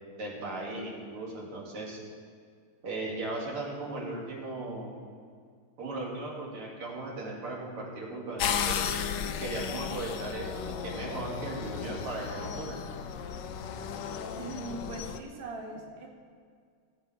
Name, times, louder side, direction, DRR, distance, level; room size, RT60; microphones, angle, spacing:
voice 1, 0.2-2.0 2.8-5.0 5.8-8.8 9.4-12.8, right 2 dB, 85° right, -3 dB, 3.2 m, -37 dB
sound 1, 8.4-15.2, left 7 dB, 70° left, 1.2 m, -34 dB
voice 2, 14.4-16.1, right 3 dB, 30° right, 0 dB, 1.4 m, -40 dB
19.0 x 8.1 x 4.9 m, 2.1 s
omnidirectional pair, 2.4 m